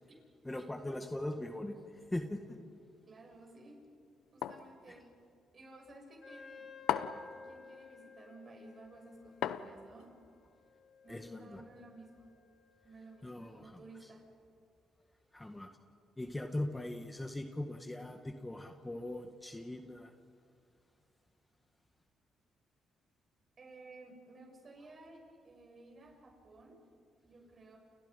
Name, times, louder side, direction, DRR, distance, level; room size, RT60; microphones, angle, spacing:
voice 1, 0.4-1.8 2.1-2.6 11.1-11.6 13.2-13.7 15.3-15.7 16.2-20.1, left 1 dB, 10° left, 5 dB, 1.7 m, -40 dB
voice 2, 3.1-3.8 4.3-5.1 5.5-6.7 7.3-10.2 11.0-12.3 12.8-14.3 23.6-26.8 27.2-27.8, right 2 dB, 40° right, 1 dB, 7.3 m, -55 dB
sound 1, 4.4-4.7 6.9-7.3 9.4-10.0, left 11 dB, 85° left, 1.0 m, -35 dB
Wind instrument woodwind instrument, 6.2-13.5, left 5 dB, 30° left, 2.1 m, -56 dB
30.0 x 29.5 x 5.5 m, 2.3 s
cardioid pair, 90°, 0 cm